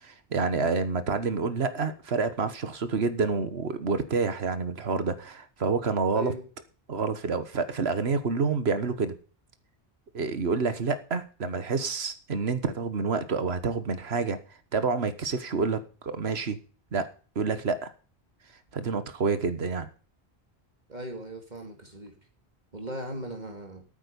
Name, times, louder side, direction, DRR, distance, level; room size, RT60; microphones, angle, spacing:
voice 1, 0.0-6.3 6.9-9.1 10.1-14.4 14.7-16.6 16.9-17.1 17.3-17.9 18.7-19.9, right 4 dB, 80° right, 12 dB, 1.6 m, -28 dB
voice 2, 20.9-22.1 22.7-23.8, right 1 dB, 45° right, 3 dB, 2.5 m, -38 dB
12.5 x 9.2 x 5.3 m, 0.38 s
omnidirectional pair, 1.0 m